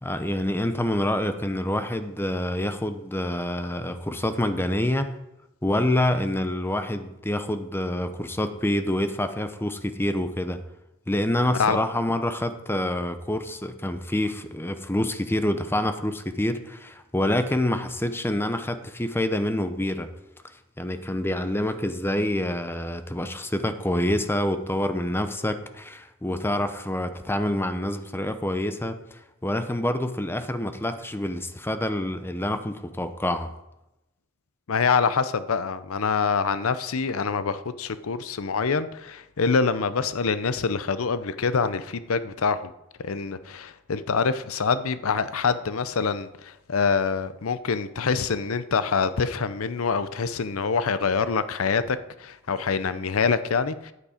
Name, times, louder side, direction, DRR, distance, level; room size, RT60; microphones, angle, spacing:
voice 1, 0.0-5.1 5.6-10.6 11.1-20.1 20.8-33.5, left 1 dB, 10° left, 9 dB, 0.7 m, -27 dB
voice 2, 34.7-42.7 43.0-53.9, left 5 dB, 80° left, 14 dB, 0.6 m, -25 dB
9.6 x 8.2 x 5.0 m, 0.89 s
head